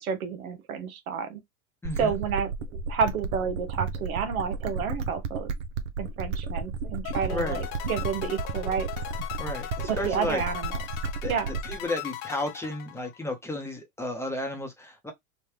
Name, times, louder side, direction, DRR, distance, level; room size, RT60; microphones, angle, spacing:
voice 1, 0.0-1.4 2.0-5.5 6.0-8.9 9.9-10.7 11.3-11.5, right 6 dB, 85° right, 1.0 m, -30 dB
voice 2, 1.8-2.2 7.3-7.6 9.4-10.4 11.2-11.3 11.6-15.1, left 1 dB, 5° left, 0.8 m, -33 dB
sound 1, 1.8-11.8, right 4 dB, 60° right, 0.7 m, -33 dB
sound 2, 7.0-13.3, left 13 dB, 60° left, 0.7 m, -39 dB
3.2 x 2.2 x 3.3 m
hypercardioid pair, 110°, 42 cm